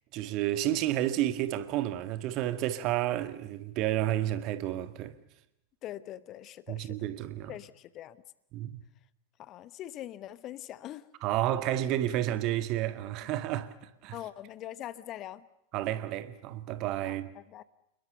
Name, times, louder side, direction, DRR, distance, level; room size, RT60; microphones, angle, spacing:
voice 1, 0.1-5.2 6.7-7.6 8.5-8.8 11.2-14.2 15.7-17.3, right 13 dB, 40° right, 1.8 m, -31 dB
voice 2, 5.8-7.1 7.5-8.2 9.4-11.0 14.1-15.4 17.0-17.6, left 13 dB, 35° left, 1.0 m, -43 dB
29.0 x 21.5 x 6.9 m
figure-of-eight pair, 90°, 0 cm